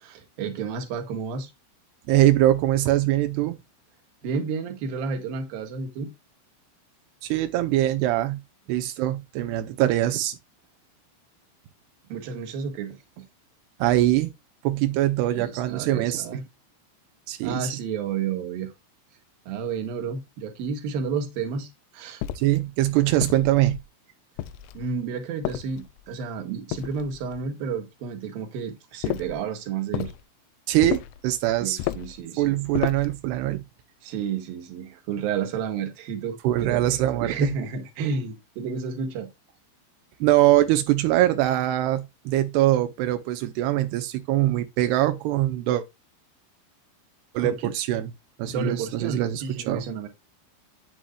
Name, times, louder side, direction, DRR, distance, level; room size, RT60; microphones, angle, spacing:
voice 1, 0.0-1.5 4.2-6.1 12.1-13.3 15.3-16.4 17.4-18.7 19.5-22.2 24.7-30.1 31.6-32.6 34.0-36.8 37.2-39.3 47.4-47.7 48.5-50.1, right 5 dB, 60° right, 2.7 m, -31 dB
voice 2, 2.1-3.6 7.2-8.4 8.7-10.4 13.8-14.3 14.6-16.2 17.3-17.7 22.4-23.8 30.7-31.8 32.4-33.6 36.4-37.5 40.2-45.8 47.3-48.1 48.4-49.8, right 14 dB, 85° right, 2.3 m, -23 dB
sound 1, 22.2-22.6 23.2-23.9 24.4-24.9 25.4-26.1 26.7-27.4 29.0-29.4 29.9-30.2 30.8-31.2 31.8-32.2 32.7-33.2, left 15 dB, 80° left, 2.8 m, -32 dB
9.6 x 7.9 x 2.3 m
omnidirectional pair, 5.8 m